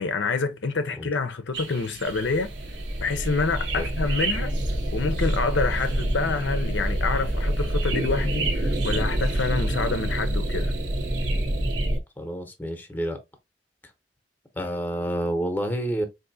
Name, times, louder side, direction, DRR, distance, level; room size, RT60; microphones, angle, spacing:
voice 1, 0.0-2.5 3.0-4.5 4.9-10.7, left 4 dB, 85° left, 0.6 m, -27 dB
sound 1, 1.5-12.0, right 5 dB, 85° right, 0.9 m, -37 dB
sound 2, 2.1-12.0, right 1 dB, 35° right, 0.7 m, -27 dB
voice 2, 12.2-13.2 14.5-16.0, right 1 dB, 10° left, 0.7 m, -28 dB
3.7 x 2.6 x 2.6 m
head